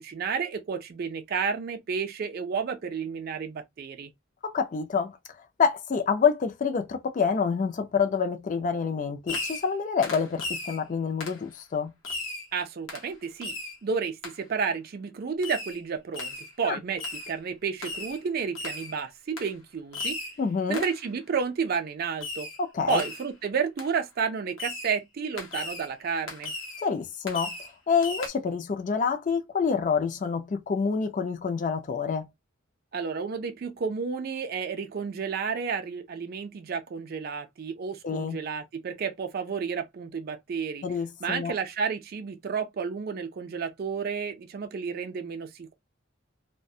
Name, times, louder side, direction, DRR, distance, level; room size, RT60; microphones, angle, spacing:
voice 1, 0.0-4.1 12.5-20.2 20.7-22.5 22.9-26.5 32.9-40.8 41.2-45.7, right 6 dB, 50° right, 0.4 m, -31 dB
voice 2, 4.4-5.2 5.6-11.9 16.6-16.8 20.4-20.8 22.6-23.0 26.8-27.5 27.9-32.3 38.0-38.4 40.8-41.5, left 5 dB, 40° left, 0.4 m, -27 dB
Fireworks, 9.3-9.8 10.0-10.8 11.2-11.4 12.0-12.5 12.9-13.1 13.4-13.8 14.2-14.4 15.4-15.8 16.1-16.5 17.0-17.3 17.8-18.2 18.6-18.9 19.4-19.5 19.9-20.4 20.7-21.0 22.2-22.6 22.9-23.3 23.8-23.9 24.6-24.9 25.4-25.9 26.3-26.9 27.3-27.7 28.0-28.3, left 3 dB, 70° left, 0.7 m, -36 dB
2.3 x 2.1 x 2.6 m
head